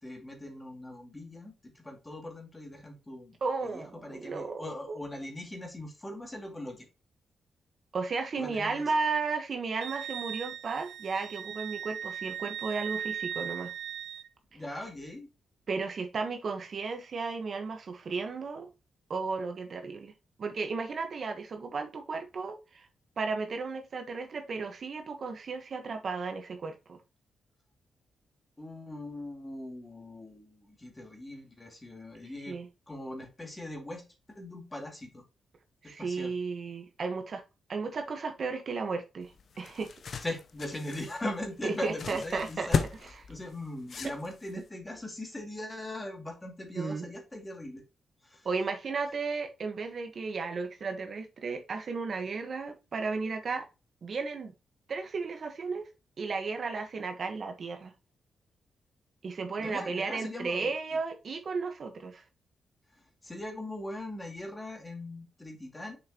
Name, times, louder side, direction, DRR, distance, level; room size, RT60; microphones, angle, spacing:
voice 1, 0.0-3.4 3.6-6.9 8.3-8.8 14.5-15.3 28.6-32.6 32.9-34.0 34.3-35.2 35.8-36.3 40.2-42.8 43.3-47.8 48.2-48.5 59.6-60.7 62.9-66.0, left 1 dB, 20° left, 2.4 m, -40 dB
voice 2, 3.4-5.0 7.9-13.7 15.7-18.7 19.1-20.1 20.4-22.9 23.2-27.0 32.5-32.7 35.8-37.4 37.7-39.9 41.6-42.7 43.0-43.1 46.8-47.1 48.4-53.6 54.0-54.5 54.9-55.9 56.2-57.9 59.2-62.2, right 4 dB, 55° right, 1.2 m, -34 dB
Wind instrument woodwind instrument, 9.8-14.3, right 9 dB, 80° right, 0.5 m, -38 dB
sound 1, 39.2-44.7, left 5 dB, 60° left, 0.7 m, -36 dB
6.5 x 5.4 x 2.9 m
cardioid pair, 75°, 0 cm